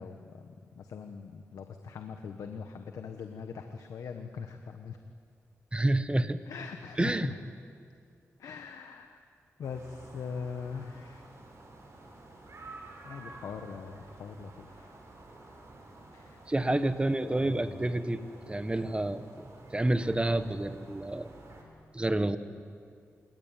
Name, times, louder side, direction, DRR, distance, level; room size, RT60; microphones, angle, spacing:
voice 1, 0.0-5.0 6.5-7.3 8.4-9.2 9.6-11.3 13.0-14.9 16.1-16.4 16.7-18.0, left 6 dB, 90° left, 6 dB, 1.3 m, -42 dB
voice 2, 5.7-6.4 7.0-7.3 16.5-21.3 21.9-22.4, right 1 dB, 20° right, 10 dB, 1.5 m, -29 dB
sound 1, 9.6-21.6, right 2 dB, 55° right, 6.9 m, -51 dB
29.5 x 18.5 x 9.2 m, 2.3 s
cardioid pair, 65°, 6 cm